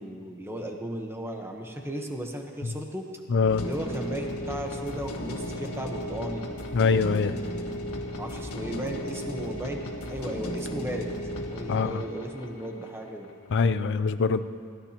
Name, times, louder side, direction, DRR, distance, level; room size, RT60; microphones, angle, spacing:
voice 1, 0.0-3.1 3.6-6.5 8.2-11.1 11.5-13.3, right 1 dB, 10° right, 2 dB, 1.1 m, -35 dB
voice 2, 3.3-3.7 6.7-7.3 11.7-11.9 13.5-14.4, left 5 dB, 55° left, 12 dB, 0.5 m, -23 dB
sound 1, 3.5-13.5, equal, 75° left, 1.7 m, -35 dB
21.0 x 16.0 x 3.0 m, 2.3 s
head